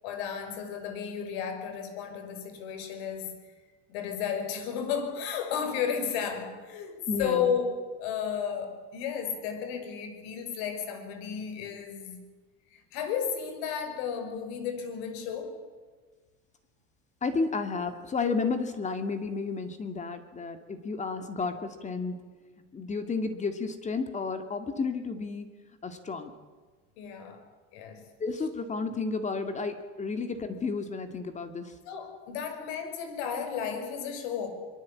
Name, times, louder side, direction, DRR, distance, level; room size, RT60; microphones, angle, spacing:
voice 1, 0.0-3.4 3.9-12.2 12.7-15.6 27.0-27.4 27.7-28.1 31.8-34.5, left 7 dB, 80° left, 6.1 m, -33 dB
voice 2, 7.1-7.5 17.2-22.2 22.7-25.5 25.8-26.3 28.2-31.7, left 4 dB, 25° left, 2.3 m, -32 dB
24.5 x 23.5 x 8.6 m
supercardioid pair, 130°, 31 cm